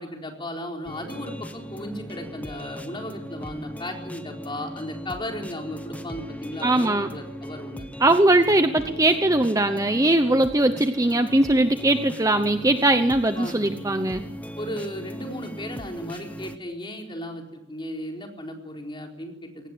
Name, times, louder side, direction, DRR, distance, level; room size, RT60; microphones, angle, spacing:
voice 1, 0.0-7.9 8.8-9.0 13.3-13.6 14.5-19.7, left 1 dB, 25° left, 1 dB, 4.3 m, -35 dB
sound 1, 0.9-16.6, equal, 5° left, 1.3 m, -39 dB
voice 2, 6.6-7.1 8.0-14.2, right 1 dB, 15° right, 8 dB, 0.9 m, -20 dB
23.0 x 18.5 x 9.8 m, 0.94 s
head